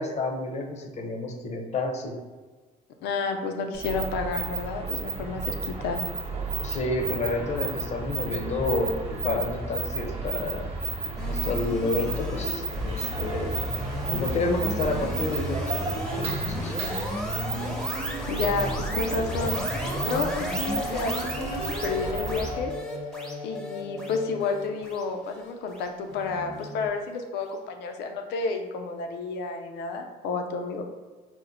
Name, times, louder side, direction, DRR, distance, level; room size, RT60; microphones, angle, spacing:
voice 1, 0.0-2.2 6.6-10.7 11.3-13.7 14.0-16.8, left 2 dB, 40° left, 3 dB, 0.6 m, -30 dB
voice 2, 3.0-6.0 18.3-19.6 20.0-22.7 23.4-30.8, left 4 dB, 85° left, 5 dB, 0.5 m, -30 dB
sound 1, 3.7-22.7, right 4 dB, 35° right, 0.7 m, -33 dB
sound 2, 11.2-26.3, equal, 5° left, 0.7 m, -33 dB
sound 3, 18.1-25.1 25.4-25.5 26.1-26.9, left 2 dB, 80° right, 0.9 m, -39 dB
4.4 x 2.1 x 3.8 m, 1.4 s
cardioid pair, 110°, 17 cm